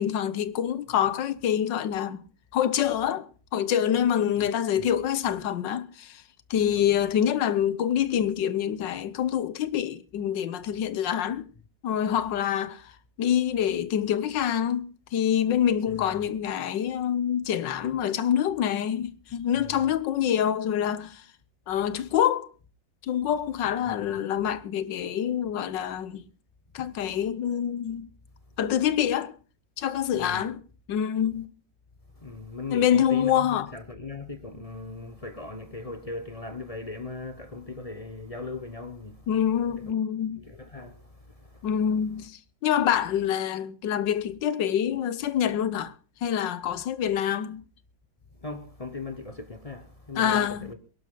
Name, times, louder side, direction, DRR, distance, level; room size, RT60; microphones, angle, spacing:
voice 1, 0.0-2.2 2.5-6.2 6.5-11.5 11.8-12.9 13.2-21.2 21.7-22.5 23.1-26.2 26.7-28.1 28.6-29.3 29.8-30.6 30.9-31.5 32.7-33.7 39.3-40.4 41.6-45.9 46.2-47.6 50.2-50.7, left 9 dB, 75° left, 1.6 m, -26 dB
voice 2, 6.6-6.9 15.9-16.1 19.6-19.9 23.9-24.2 26.8-26.9 30.1-30.4 32.1-39.3 39.7-39.9 40.3-41.7 48.3-50.8, left 3 dB, 25° left, 0.9 m, -39 dB
21.5 x 12.0 x 3.9 m
omnidirectional pair, 2.0 m